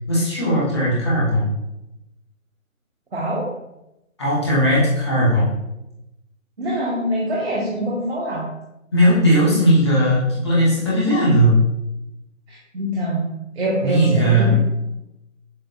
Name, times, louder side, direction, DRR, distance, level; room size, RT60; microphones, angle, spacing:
voice 1, 0.1-1.5 4.2-5.5 8.9-11.6 13.8-14.5, equal, 20° left, -8 dB, 0.9 m, -17 dB
voice 2, 3.1-3.5 6.6-8.5 12.5-13.3 13.6-14.6, right 1 dB, 50° right, -4 dB, 0.9 m, -24 dB
7.3 x 2.5 x 2.2 m, 0.91 s
figure-of-eight pair, 145°, 41 cm